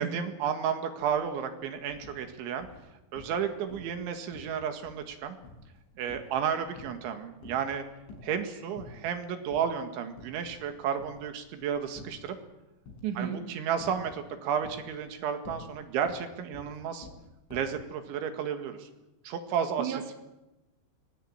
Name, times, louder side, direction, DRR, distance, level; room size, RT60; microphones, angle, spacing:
voice 1, 0.0-2.7 3.1-5.4 6.0-7.8 8.2-12.4 13.2-17.1 17.5-18.9 19.3-20.0, right 8 dB, 85° right, 7 dB, 4.4 m, -32 dB
sound 1, 1.0-1.2 1.5-2.2 2.6-3.4 3.7-4.0 4.3-7.1 7.4-8.4 8.8-9.2 9.5-9.7 10.1-10.7 11.0-12.3 12.9-13.3 13.8-14.3 14.6-17.8, left 3 dB, 90° left, 8.4 m, -49 dB
voice 2, 13.0-13.4 19.8-20.2, right 9 dB, 50° right, 6 dB, 3.0 m, -33 dB
23.5 x 18.5 x 8.8 m, 0.99 s
omnidirectional pair, 5.3 m